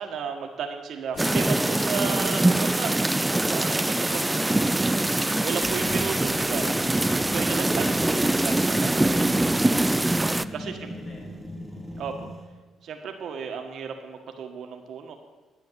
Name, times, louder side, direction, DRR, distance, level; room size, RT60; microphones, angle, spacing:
voice 1, 0.0-4.9 5.3-9.3 10.5-10.9 12.0-12.1 12.8-15.1, right 6 dB, 70° right, 4 dB, 1.6 m, -34 dB
sound 1, 1.1-8.8, left 8 dB, 85° left, 0.9 m, -48 dB
sound 2, 1.2-10.5, right 2 dB, 10° right, 0.4 m, -23 dB
sound 3, 5.6-12.4, equal, 5° left, 2.8 m, -37 dB
voice 2, 10.3-11.4 11.7-11.9, left 2 dB, 55° left, 0 dB, 3.7 m, -50 dB
11.0 x 9.0 x 7.7 m, 1.3 s
cardioid pair, 90°, 0 cm